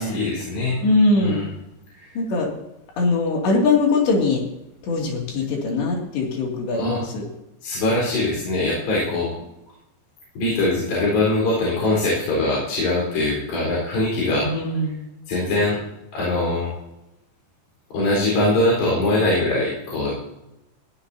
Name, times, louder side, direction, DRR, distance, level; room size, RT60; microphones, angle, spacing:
voice 1, 0.0-0.8 1.2-1.5 2.0-2.1 6.7-7.0 7.6-9.3 10.4-14.5 15.3-15.8 16.1-16.7 17.9-20.2, left 2 dB, 55° left, -5 dB, 6.2 m, -22 dB
voice 2, 0.8-1.4 2.2-2.5 3.0-4.4 4.8-7.2 14.4-15.0, left 3 dB, 75° left, 0 dB, 4.8 m, -21 dB
20.5 x 14.5 x 2.8 m, 0.90 s
omnidirectional pair, 5.1 m